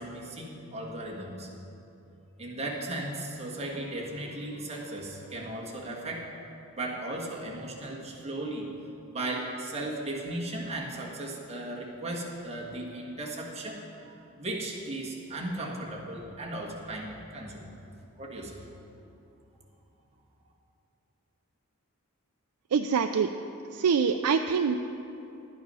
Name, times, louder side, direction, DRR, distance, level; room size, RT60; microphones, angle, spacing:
voice 1, 0.0-1.5 2.4-6.3 6.7-8.7 9.1-13.8 14.1-17.7 18.2-18.6, right 1 dB, 30° right, -3 dB, 1.6 m, -36 dB
voice 2, 22.7-23.3 23.7-24.8, right 6 dB, 85° right, 7 dB, 0.4 m, -25 dB
10.5 x 9.4 x 5.5 m, 2.8 s
head